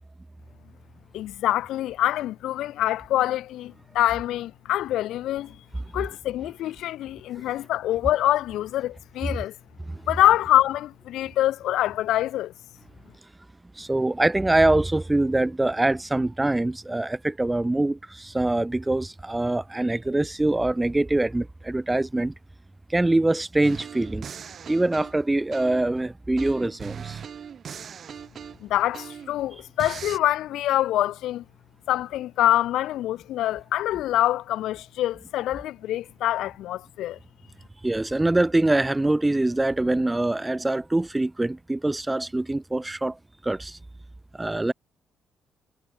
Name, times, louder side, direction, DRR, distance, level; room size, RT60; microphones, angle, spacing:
voice 1, 1.1-5.6 5.9-9.5 10.1-12.5 28.6-31.4 31.9-37.2, left 14 dB, 80° left, 2.4 m, -25 dB
voice 2, 13.8-22.3 22.9-24.3 24.7-27.2 37.8-43.2 43.4-43.8 44.3-44.7, right 2 dB, 15° right, 0.6 m, -24 dB
sound 1, 23.6-26.0 26.4-29.4 29.8-30.2, right 7 dB, 55° right, 1.8 m, -39 dB
cardioid pair, 90°, 0 cm